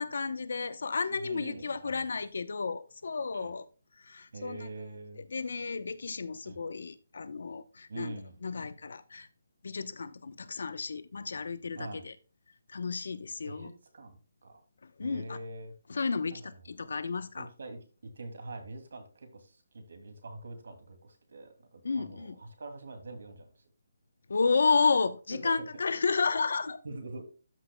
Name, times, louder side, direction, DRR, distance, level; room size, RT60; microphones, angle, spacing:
voice 1, 0.0-3.7 4.0-4.7 5.3-8.1 8.4-9.3 9.6-12.1 12.7-13.7 14.8-15.4 15.9-17.5 21.8-22.4 24.3-26.8, left 4 dB, 70° left, 0.9 m, -32 dB
voice 2, 1.1-2.0 3.3-3.5 4.3-5.2 6.4-6.6 7.9-8.4 11.8-12.0 13.4-14.6 15.0-15.7 16.4-16.5 17.4-17.8 18.1-23.5 25.3-25.7 26.8-27.2, right 2 dB, 70° right, 2.5 m, -44 dB
13.0 x 6.1 x 2.2 m
hypercardioid pair, 175°, 0 cm